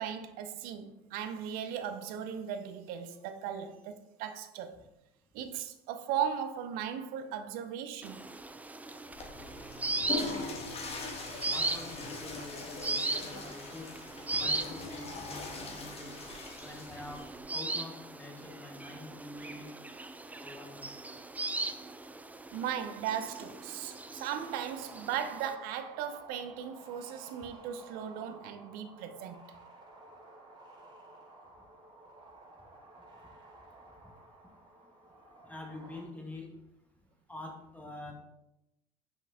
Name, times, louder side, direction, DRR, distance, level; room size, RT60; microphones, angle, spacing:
voice 1, 0.0-4.8 5.3-8.3 22.5-29.5, right 8 dB, 70° right, 0.7 m, -37 dB
sound 1, 8.0-25.5, right 2 dB, 10° right, 0.4 m, -39 dB
Water / Toilet flush, 9.0-17.4, left 3 dB, 40° left, 1.5 m, -41 dB
voice 2, 11.4-13.9 14.3-16.1 16.6-17.3 17.5-19.7 20.4-21.2 34.0-34.1 35.4-36.5 37.3-38.1, left 2 dB, 10° left, 1.6 m, -46 dB
sound 2, 24.4-36.0, right 2 dB, 30° right, 1.9 m, -54 dB
5.4 x 5.3 x 3.6 m
supercardioid pair, 85°, 16 cm